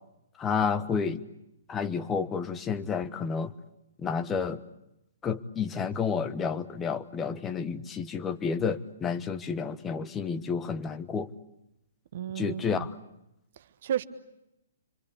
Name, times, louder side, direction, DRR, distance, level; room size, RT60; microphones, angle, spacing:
voice 1, 0.4-1.2 1.7-3.5 4.0-4.6 5.2-11.3 12.4-12.9, left 6 dB, 15° left, 11 dB, 1.2 m, -30 dB
voice 2, 12.1-12.9 13.6-14.0, right 10 dB, 50° right, 12 dB, 1.4 m, -33 dB
27.5 x 25.5 x 8.4 m, 0.87 s
figure-of-eight pair, 120°, 0 cm